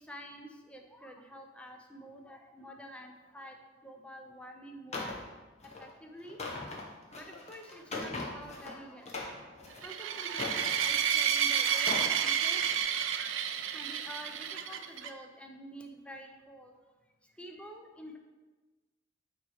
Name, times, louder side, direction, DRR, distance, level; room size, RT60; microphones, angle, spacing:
voice 1, 0.1-3.5 3.8-5.2 5.8-6.4 7.1-9.2 9.8-12.6 12.9-13.3 13.7-16.7 17.4-18.2, equal, 5° left, 3 dB, 0.7 m, -48 dB
sound 1, 4.9-5.2 5.6-5.8 6.2-8.7 9.0-9.8 10.3-11.2 11.7-12.1 12.6-12.8, left 3 dB, 35° left, 1.1 m, -40 dB
sound 2, 9.8-15.1, right 9 dB, 70° right, 0.5 m, -30 dB
9.2 x 3.2 x 4.8 m, 1.2 s
head